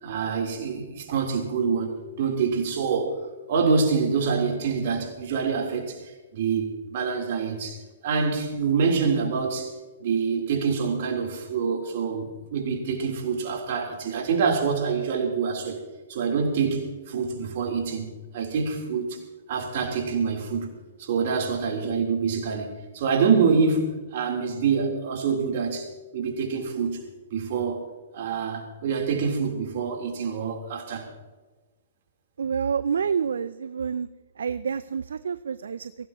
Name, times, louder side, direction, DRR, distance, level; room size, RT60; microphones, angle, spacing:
voice 1, 0.0-3.2 3.5-9.7 10.0-15.8 16.1-19.2 19.5-20.7 21.0-27.0 27.3-27.9 28.1-31.1, right 5 dB, 55° right, 3.7 m, -26 dB
voice 2, 32.4-34.1 34.4-36.1, right 6 dB, 70° right, 0.4 m, -28 dB
22.5 x 17.0 x 3.0 m
figure-of-eight pair, 115°, 0 cm